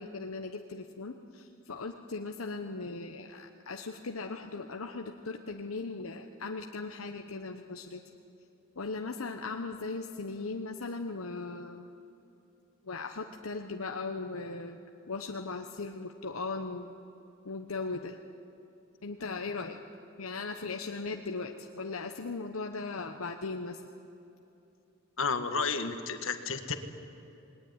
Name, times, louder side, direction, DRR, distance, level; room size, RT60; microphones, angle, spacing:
voice 1, 0.0-8.0 8.8-11.9 12.8-16.9 17.4-18.2 19.0-19.8 20.2-23.8, left 3 dB, 85° left, 4 dB, 1.1 m, -38 dB
voice 2, 25.2-26.7, left 4 dB, 70° left, 8 dB, 1.7 m, -31 dB
27.5 x 20.5 x 9.7 m, 2.9 s
head